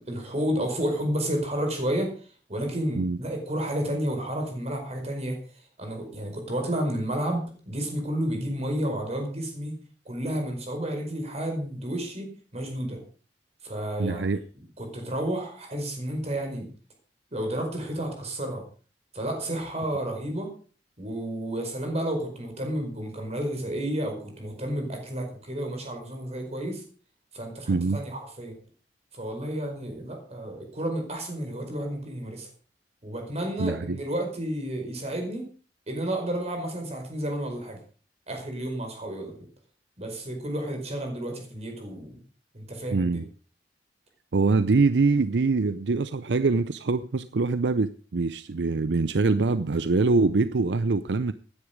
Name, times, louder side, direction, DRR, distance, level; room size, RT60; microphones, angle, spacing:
voice 1, 0.0-2.1 2.5-5.4 5.8-9.8 10.0-13.0 13.6-16.7 17.3-18.6 19.1-20.5 21.0-26.8 27.3-28.5 29.1-32.5 33.0-35.4 35.9-37.8 38.3-39.3 40.0-42.2 42.5-43.2, right 1 dB, 40° right, 3 dB, 5.0 m, -31 dB
voice 2, 14.0-14.4 27.7-28.0 33.6-34.0 42.9-43.2 44.3-51.3, right 3 dB, 75° right, 13 dB, 0.6 m, -24 dB
15.0 x 10.0 x 5.2 m, 0.40 s
head